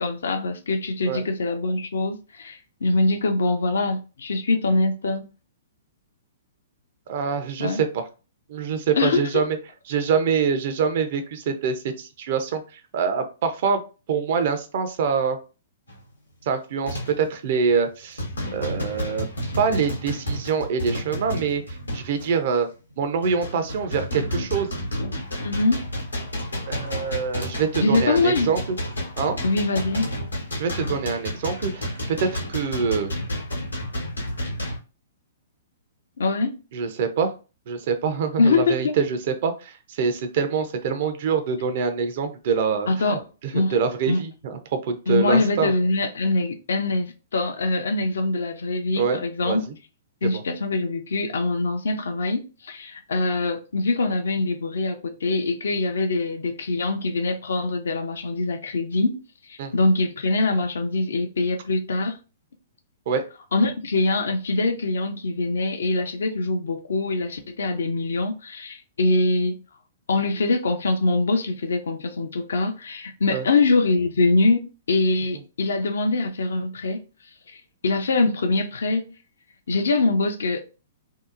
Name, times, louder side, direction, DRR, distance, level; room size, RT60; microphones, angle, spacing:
voice 1, 0.0-5.3 7.6-7.8 8.9-9.5 25.4-25.9 27.8-28.5 29.4-30.1 36.2-36.6 38.4-39.0 42.9-43.3 43.5-43.8 44.1-44.2 45.1-49.6 50.2-59.2 59.5-62.2 63.5-69.6 70.1-77.0 77.5-79.2 79.7-80.6, left 3 dB, 65° left, 0.4 m, -23 dB
voice 2, 7.1-8.0 8.5-9.6 9.9-13.8 14.1-15.4 16.5-18.2 18.5-19.3 19.6-22.7 23.0-24.7 26.7-28.8 29.2-29.4 30.6-33.1 36.7-37.3 37.7-45.7 48.9-49.6 50.2-50.4 59.6-59.7 63.1-63.2 73.3-73.4, right 6 dB, 50° right, 0.5 m, -25 dB
sound 1, 15.9-16.1 16.8-17.3 17.7-17.9 18.2-22.3 22.9-34.8, equal, 85° left, 0.8 m, -31 dB
2.7 x 2.0 x 2.4 m
figure-of-eight pair, 115°, 0 cm